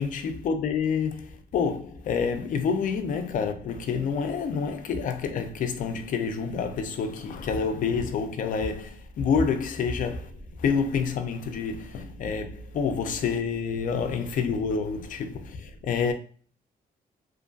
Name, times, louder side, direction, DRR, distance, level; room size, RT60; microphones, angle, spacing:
voice 1, 0.0-10.3 10.6-16.1, left 5 dB, 60° left, 0.4 m, -28 dB
2.5 x 2.3 x 2.5 m
wide cardioid pair, 155°, 16 cm